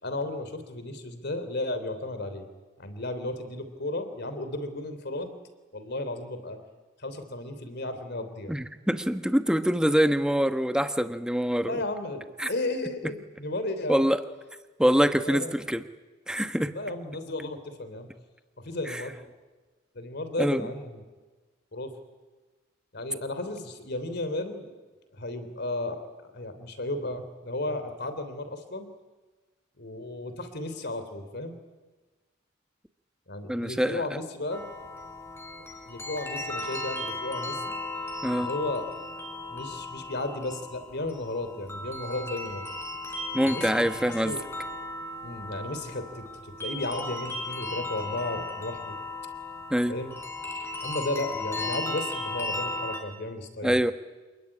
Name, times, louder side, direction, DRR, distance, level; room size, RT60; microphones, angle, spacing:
voice 1, 0.0-2.5 2.8-5.4 5.7-6.6 7.0-8.5 11.6-14.1 15.2-15.6 16.7-18.1 18.6-19.2 19.9-21.0 21.7-21.9 22.9-24.7 25.1-26.0 26.3-28.9 29.8-31.6 33.3-34.6 35.8-37.7 38.4-38.9 39.5-42.6 43.4-43.7 44.1-44.4 45.2-48.9 49.9-50.2 50.8-53.8, left 2 dB, 55° left, 10 dB, 3.3 m, -34 dB
voice 2, 8.5-11.8 12.4-12.5 13.9-14.2 14.8-15.8 16.3-16.7 18.9-19.0 20.4-20.7 33.5-34.0 38.2-38.5 43.3-44.3 49.7-49.9 53.6-53.9, equal, 5° right, 9 dB, 1.1 m, -24 dB
sound 1, 34.5-53.0, left 2 dB, 15° left, 3.7 m, -36 dB
27.0 x 21.5 x 9.9 m, 1.3 s
head